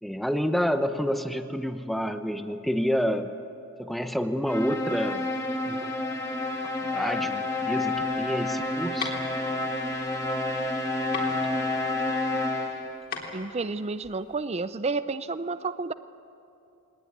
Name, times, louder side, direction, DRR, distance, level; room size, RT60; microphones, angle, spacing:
voice 1, 0.0-3.3 3.8-5.3 5.7-5.9 6.9-9.1, equal, ahead, 8 dB, 0.8 m, -28 dB
sound 1, 4.5-13.0, left 2 dB, 15° left, 2.7 m, -29 dB
sound 2, 7.8-14.4, left 4 dB, 50° left, 3.5 m, -39 dB
voice 2, 13.3-15.9, right 3 dB, 30° right, 14 dB, 0.5 m, -30 dB
21.5 x 19.0 x 9.5 m, 2.7 s
head